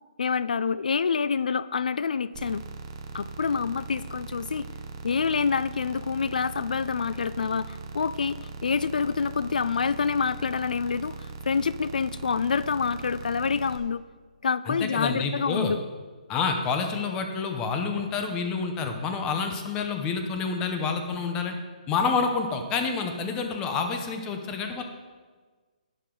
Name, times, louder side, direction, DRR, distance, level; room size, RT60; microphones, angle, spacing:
voice 1, 0.2-2.6 3.1-4.7 5.0-14.0 14.4-15.8, left 5 dB, 80° left, 17 dB, 0.4 m, -27 dB
sound 1, 2.3-13.8, right 4 dB, 25° right, 0.8 m, -40 dB
voice 2, 14.7-15.7 16.3-21.6 21.9-24.8, left 5 dB, 10° left, 5 dB, 0.7 m, -28 dB
11.5 x 10.0 x 3.8 m, 1.4 s
hypercardioid pair, 175°, 4 cm